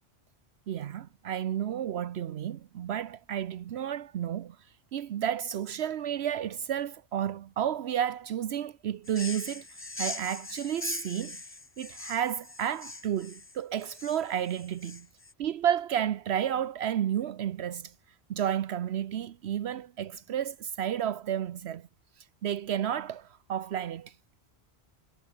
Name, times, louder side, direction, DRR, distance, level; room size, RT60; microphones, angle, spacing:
voice 1, 0.7-4.6 4.9-9.6 10.0-11.4 11.8-15.1 15.4-17.9 18.3-21.8 22.4-24.1, right 10 dB, 75° right, 1.0 m, -31 dB
sound 1, 9.0-15.3, left 2 dB, 15° left, 0.6 m, -41 dB
omnidirectional pair, 1.1 m